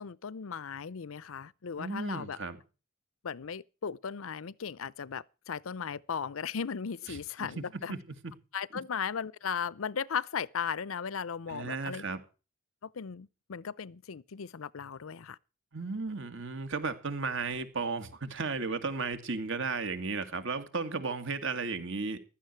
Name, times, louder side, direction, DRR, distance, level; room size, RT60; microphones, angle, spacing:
voice 1, 0.0-2.4 3.2-7.9 8.5-12.0 12.8-15.4, left 6 dB, 75° left, 0.6 m, -37 dB
voice 2, 1.8-2.6 7.1-8.0 8.2-8.3 11.5-12.2 15.7-22.2, right 4 dB, 65° right, 2.3 m, -34 dB
15.5 x 12.5 x 4.6 m
head